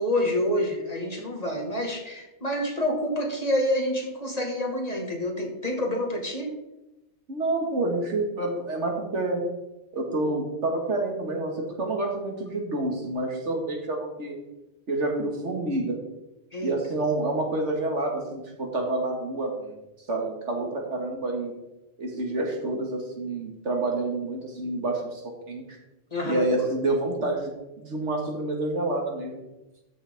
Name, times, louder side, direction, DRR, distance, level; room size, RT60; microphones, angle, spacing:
voice 1, 0.0-6.5 16.5-16.7 26.1-26.5, left 1 dB, 35° left, 1 dB, 1.8 m, -27 dB
voice 2, 7.3-9.4 9.9-14.4 14.9-16.0 16.6-19.8 20.1-21.5 22.0-25.8 26.2-27.5 27.8-29.4, right 2 dB, 75° right, 1 dB, 2.1 m, -28 dB
13.0 x 6.6 x 3.6 m, 0.97 s
omnidirectional pair, 1.2 m